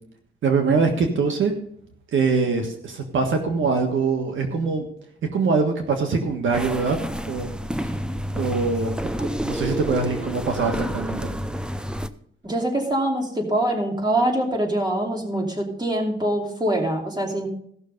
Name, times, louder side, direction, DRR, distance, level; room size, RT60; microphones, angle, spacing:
voice 1, 0.4-1.5 2.1-4.9 5.3-7.0 7.3-7.5 8.3-11.3, right 4 dB, 65° right, 4 dB, 1.6 m, -23 dB
sound 1, 6.5-12.1, equal, 5° right, 0.6 m, -29 dB
voice 2, 12.4-17.5, right 1 dB, 20° right, 2 dB, 2.7 m, -24 dB
15.5 x 6.4 x 5.3 m, 0.66 s
cardioid pair, 110°, 21 cm